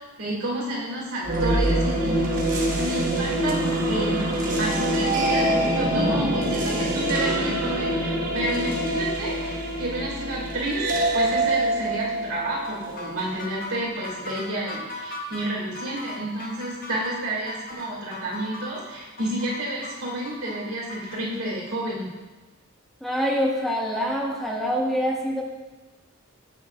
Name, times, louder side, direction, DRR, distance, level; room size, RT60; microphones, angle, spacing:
voice 1, 0.0-22.1, right 1 dB, 80° right, -5 dB, 2.0 m, -30 dB
sound 1, 1.2-13.4, right 1 dB, 40° right, 0.9 m, -25 dB
sound 2, 12.6-21.2, left 2 dB, 40° left, 1.0 m, -38 dB
voice 2, 23.0-25.4, equal, ahead, -1 dB, 0.5 m, -25 dB
7.7 x 6.0 x 2.3 m, 1.2 s
head